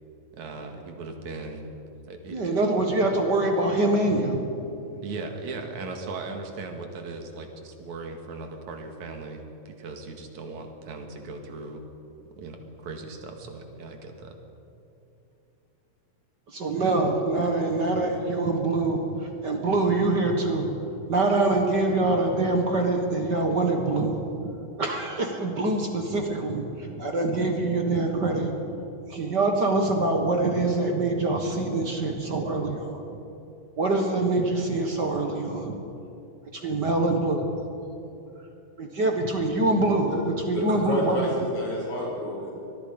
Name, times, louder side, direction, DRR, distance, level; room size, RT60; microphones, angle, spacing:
voice 1, 0.3-1.7 2.1-2.6 5.0-11.8 12.4-14.3, right 3 dB, 75° right, 4 dB, 3.2 m, -38 dB
voice 2, 2.3-4.5 16.5-20.8 21.1-24.5 24.8-28.8 29.1-33.2 33.8-35.8 36.6-37.5 38.8-41.3, right 2 dB, 40° right, 3 dB, 1.8 m, -25 dB
voice 3, 40.5-42.5, left 1 dB, 90° left, -5 dB, 8.4 m, -29 dB
24.5 x 21.0 x 5.3 m, 2.9 s
omnidirectional pair, 3.3 m